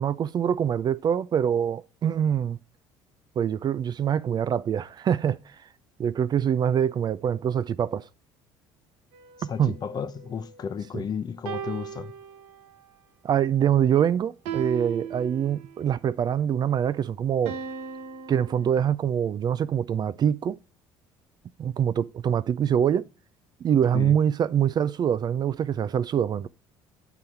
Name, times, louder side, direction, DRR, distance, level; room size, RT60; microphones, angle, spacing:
voice 1, 0.0-2.6 3.4-5.6 6.0-8.1 9.6-9.7 10.9-11.0 13.2-17.6 18.3-20.6 21.6-23.1 23.6-26.5, right 9 dB, 40° right, 0.4 m, -24 dB
sound 1, 9.1-10.9 11.5-12.9 14.5-15.9 17.5-18.9, right 7 dB, 75° right, 0.9 m, -38 dB
voice 2, 9.4-12.1 23.9-24.2, left 7 dB, 40° left, 0.7 m, -33 dB
8.3 x 3.9 x 4.4 m
supercardioid pair, 80°, 11 cm